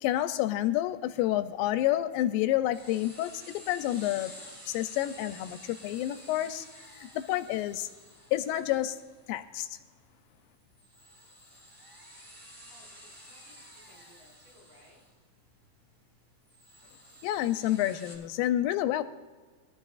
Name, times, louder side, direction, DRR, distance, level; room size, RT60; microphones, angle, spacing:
voice 1, 0.0-4.3 4.7-6.7 6.9-7.9 8.3-9.0 9.3-9.8 17.2-19.0, left 13 dB, 85° left, 10 dB, 2.3 m, -29 dB
sound 1, 2.7-18.1, equal, 10° right, 4.2 m, -52 dB
voice 2, 12.7-15.1, left 1 dB, 65° right, -4 dB, 6.1 m, -60 dB
22.5 x 13.5 x 2.4 m, 1.4 s
omnidirectional pair, 4.0 m